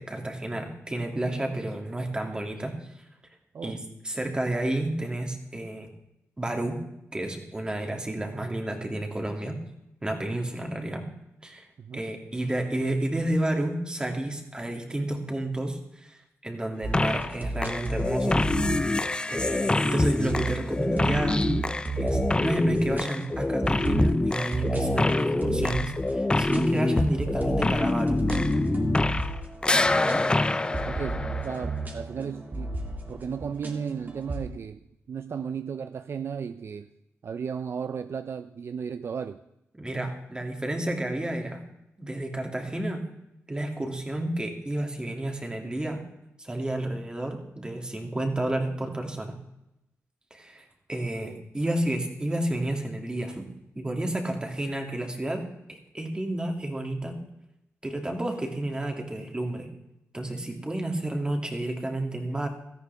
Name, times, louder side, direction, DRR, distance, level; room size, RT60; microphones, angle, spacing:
voice 1, 0.0-2.9 3.6-3.8 4.0-5.9 6.4-6.8 7.1-9.6 10.0-11.1 11.4-11.7 11.9-18.4 19.3-21.5 22.0-28.2 39.8-41.6 42.0-43.0 43.5-46.0 46.4-49.4 50.3-50.6 50.9-53.5 53.8-57.1 57.8-59.7 60.1-62.5, right 1 dB, 15° right, 2.5 m, -31 dB
voice 2, 3.5-3.9 11.8-12.0 29.8-30.3 30.7-32.8 33.1-34.8 35.1-36.9 37.2-39.4 51.2-51.4, right 6 dB, 55° right, 0.5 m, -35 dB
sound 1, 16.8-34.4, right 3 dB, 35° right, 2.3 m, -34 dB
sound 2, 16.9-17.4 17.6-29.4 29.6-31.8, left 2 dB, 15° left, 0.5 m, -26 dB
17.0 x 13.5 x 3.5 m
cardioid pair, 95°, 5 cm